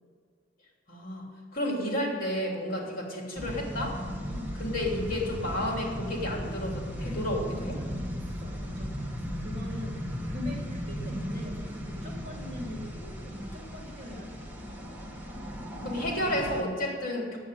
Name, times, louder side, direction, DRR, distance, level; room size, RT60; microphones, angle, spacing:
voice 1, 0.9-1.2 1.5-4.0 4.6-7.7 12.2-12.4 15.8-17.4, left 1 dB, 50° left, -1 dB, 3.2 m, -31 dB
sound 1, 3.4-16.6, equal, 10° right, 1.5 m, -36 dB
voice 2, 7.6-14.4, left 1 dB, 35° right, -2 dB, 3.1 m, -42 dB
9.5 x 8.3 x 9.2 m, 2.1 s
head